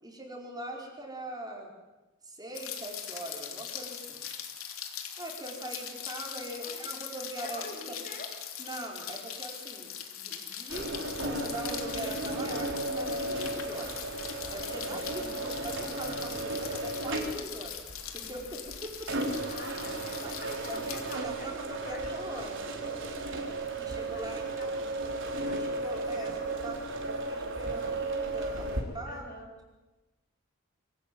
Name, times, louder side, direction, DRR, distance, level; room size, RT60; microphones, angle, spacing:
voice 1, 0.0-1.7 2.2-4.2 5.2-8.0 8.6-14.1 14.5-17.8 18.1-19.1 20.2-20.3 20.7-22.7 23.8-24.4 25.5-29.3, right 1 dB, 20° right, 0 dB, 4.8 m, -42 dB
Rain, 2.5-21.2, left 9 dB, 80° left, 3.1 m, -41 dB
voice 2, 7.4-8.3 15.1-15.5 19.5-21.5 21.8-23.0 24.1-25.2 25.5-26.5 27.2-28.0 29.1-29.5, left 2 dB, 45° left, 3 dB, 5.0 m, -47 dB
sound 1, 10.7-28.8, right 2 dB, 65° right, 4.0 m, -35 dB
24.5 x 17.5 x 9.4 m, 1.1 s
head